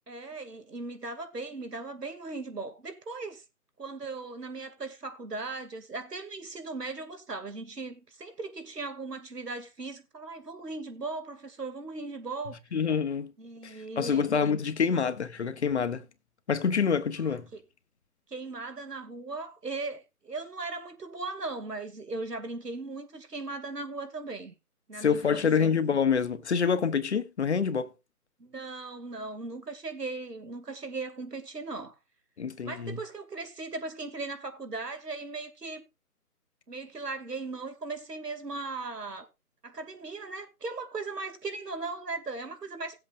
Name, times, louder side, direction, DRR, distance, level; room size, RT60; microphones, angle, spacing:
voice 1, 0.1-3.4 3.8-12.6 13.4-14.3 18.3-24.5 24.9-25.7 28.4-32.0 32.6-35.8 36.7-39.3 39.6-43.0, right 3 dB, 85° right, 2.4 m, -38 dB
voice 2, 12.7-13.3 13.6-16.1 16.5-17.5 25.0-27.9 32.4-33.0, left 6 dB, 45° left, 0.9 m, -27 dB
17.5 x 7.8 x 2.4 m
figure-of-eight pair, 150°, 47 cm